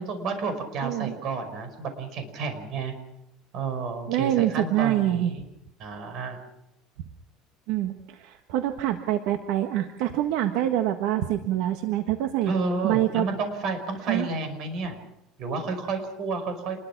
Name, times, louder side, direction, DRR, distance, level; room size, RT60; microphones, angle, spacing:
voice 1, 0.0-2.9 3.5-5.4 5.8-6.4 12.5-15.0 15.4-16.8, right 4 dB, 45° right, 8 dB, 5.5 m, -31 dB
voice 2, 0.8-1.1 4.1-5.3 7.7-12.5 12.8-13.3 14.1-14.3, right 13 dB, 70° right, 7 dB, 1.5 m, -25 dB
27.5 x 21.5 x 6.1 m, 0.87 s
cardioid pair, 160°, 0 cm